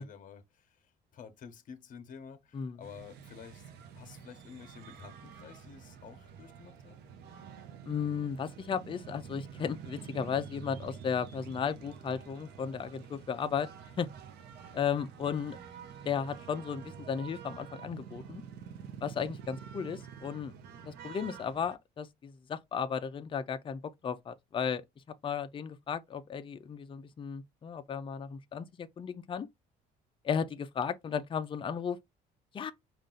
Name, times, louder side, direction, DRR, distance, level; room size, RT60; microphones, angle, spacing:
voice 1, 0.0-7.1, left 7 dB, 50° left, 1.0 m, -51 dB
sound 1, 2.8-21.8, right 7 dB, 75° right, 0.9 m, -48 dB
voice 2, 7.9-13.7 14.0-14.1 14.7-15.6 16.0-18.4 19.0-20.5 20.8-24.8 25.2-29.5 30.2-32.0 32.5-32.7, left 7 dB, 30° left, 0.5 m, -35 dB
5.2 x 2.5 x 3.8 m
cardioid pair, 110°, 17 cm